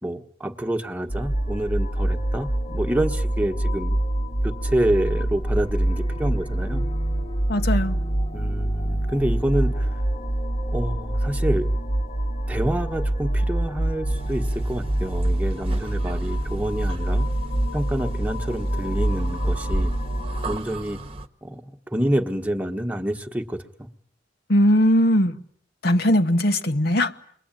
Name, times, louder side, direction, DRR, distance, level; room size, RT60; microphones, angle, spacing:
voice 1, 0.0-4.0 4.4-6.8 8.3-10.0 10.7-11.7 12.5-17.3 17.7-19.9 20.4-21.0 21.4-23.9, right 1 dB, 10° right, 1.4 m, -27 dB
sound 1, 1.1-20.6, right 1 dB, 35° left, 1.1 m, -25 dB
voice 2, 7.5-8.0 24.5-25.4 25.8-27.1, equal, 60° left, 1.2 m, -19 dB
sound 2, 14.1-21.3, right 1 dB, 30° right, 1.2 m, -34 dB
29.0 x 22.0 x 9.0 m
head